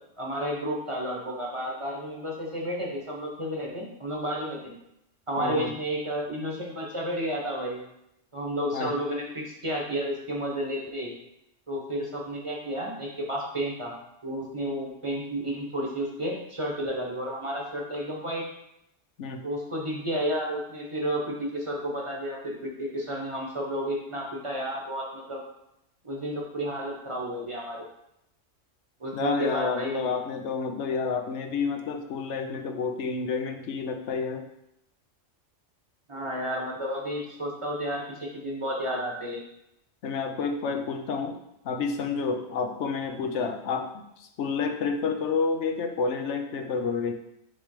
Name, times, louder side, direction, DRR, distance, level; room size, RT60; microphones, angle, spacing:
voice 1, 0.2-4.7 5.3-7.8 8.3-11.1 11.7-13.9 14.2-18.5 19.4-25.4 26.0-27.9 29.0-30.1 36.1-39.4, equal, 25° right, -2 dB, 1.2 m, -31 dB
voice 2, 5.4-5.7 8.7-8.9 19.2-19.4 29.1-34.4 40.0-41.4 41.6-47.1, left 5 dB, 70° left, 5 dB, 1.0 m, -29 dB
6.7 x 3.3 x 4.9 m, 0.82 s
omnidirectional pair, 1.3 m